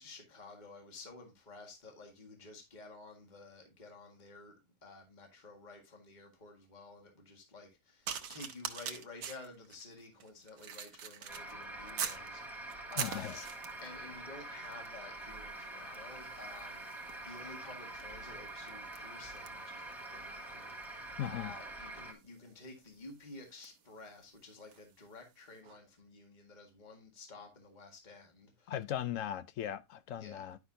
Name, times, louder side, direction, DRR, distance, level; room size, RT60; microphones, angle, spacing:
voice 1, 0.0-13.4 13.8-28.7 30.1-30.4, left 3 dB, 25° left, 1.9 m, -52 dB
sound 1, 8.1-12.3 12.7-14.0 14.7-15.0 15.2-24.9 25.6-25.8, right 8 dB, 90° right, 1.6 m, -45 dB
sound 2, 11.3-22.1, right 2 dB, ahead, 2.1 m, -46 dB
voice 2, 13.0-13.4 21.2-21.5 28.7-30.6, left 10 dB, 65° left, 0.8 m, -38 dB
11.0 x 6.0 x 2.7 m
omnidirectional pair, 1.8 m